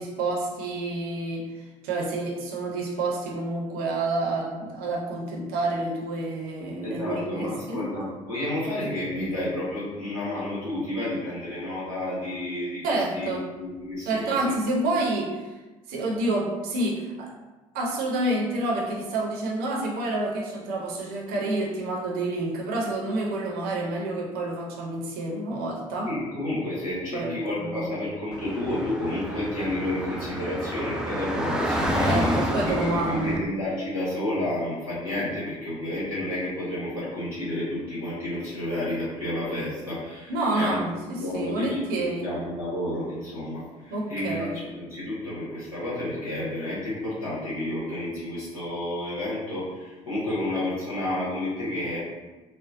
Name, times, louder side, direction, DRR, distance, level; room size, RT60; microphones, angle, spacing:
voice 1, 0.0-1.5 1.8-7.8 12.8-13.4 14.1-15.4 15.9-17.3 17.7-26.1 27.1-27.9 32.0-33.4 40.3-42.3 43.9-44.5, right 2 dB, 55° right, -2 dB, 0.8 m, -28 dB
voice 2, 6.8-12.8 13.1-14.5 26.1-40.8 41.0-52.0, left 1 dB, 80° left, -10 dB, 1.3 m, -30 dB
Car / Traffic noise roadway noise, 28.3-33.4, equal, 5° right, 0.5 m, -29 dB
4.4 x 2.1 x 2.5 m, 1.2 s
figure-of-eight pair, 50°, 18 cm